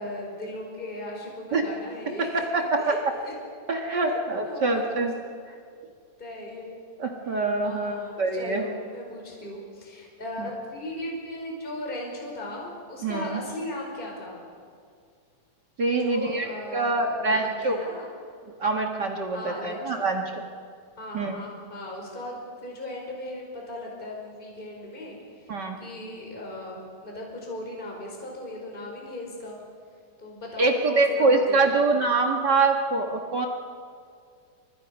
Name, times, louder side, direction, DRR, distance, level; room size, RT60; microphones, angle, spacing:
voice 1, 0.0-3.0 3.2-3.3 4.0-4.2 4.4-5.1 6.2-6.7 7.2-14.5 16.0-18.1 19.3-20.1 21.0-29.6 30.2-32.1, left 1 dB, 15° left, -1 dB, 5.0 m, -37 dB
voice 2, 2.2-2.8 3.7-5.1 7.0-8.6 10.4-10.5 13.0-13.4 15.8-16.4 16.7-17.8 18.6-20.2 21.1-21.4 25.5-25.8 30.6-33.5, right 3 dB, 45° right, 2 dB, 1.4 m, -24 dB
29.5 x 26.0 x 5.4 m, 2.2 s
omnidirectional pair, 4.3 m